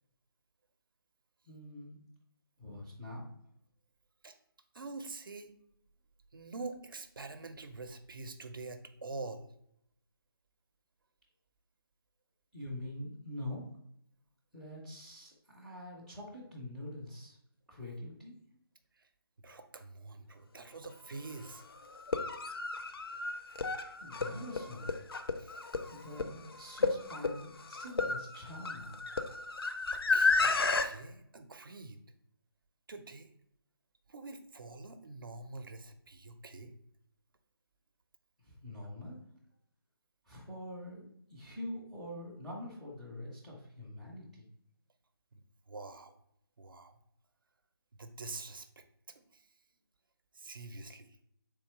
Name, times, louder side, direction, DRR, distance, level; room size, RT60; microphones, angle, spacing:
voice 1, 1.4-2.0 2.6-3.3 12.5-13.7 14.5-17.4 17.7-18.4 24.0-25.0 25.9-29.0 38.4-39.2 40.2-44.5, left 1 dB, ahead, -9 dB, 0.4 m, -45 dB
voice 2, 4.7-5.5 6.3-9.5 19.0-19.1 19.4-21.6 25.3-25.6 29.9-32.0 32.9-33.3 34.1-36.7 45.3-45.4 45.7-46.2 46.6-47.0 48.0-48.8 49.1-49.4 50.3-51.2, right 3 dB, 60° right, 8 dB, 0.5 m, -46 dB
sound 1, 20.8-20.9 21.9-30.9, left 4 dB, 75° left, 0.5 m, -32 dB
3.6 x 2.9 x 4.4 m, 0.72 s
figure-of-eight pair, 155°, 13 cm